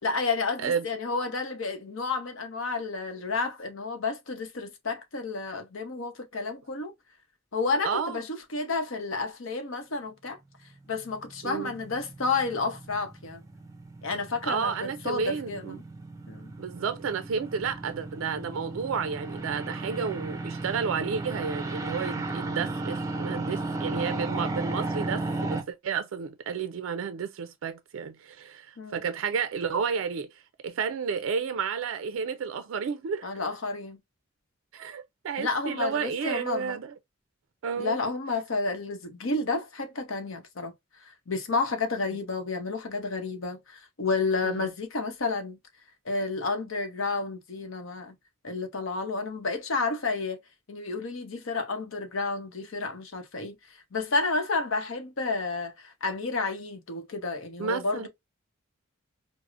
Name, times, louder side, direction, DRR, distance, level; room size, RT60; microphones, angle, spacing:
voice 1, 0.0-6.9 7.5-10.4 10.9-13.4 14.0-15.8 16.3-16.5 23.9-24.1 28.8-29.0 33.2-34.0 35.4-36.8 37.8-40.7 41.0-45.6 46.1-48.1 48.4-50.4 50.7-53.6 53.9-58.1, left 3 dB, 75° left, 0.8 m, -31 dB
voice 2, 7.8-8.2 11.4-11.7 14.4-15.8 16.6-30.3 30.6-33.3 34.7-36.9 37.6-38.0 44.4-44.7 57.6-58.1, right 6 dB, 80° right, 0.4 m, -31 dB
sound 1, 11.0-25.6, right 2 dB, 15° right, 0.4 m, -35 dB
4.6 x 2.0 x 2.4 m
head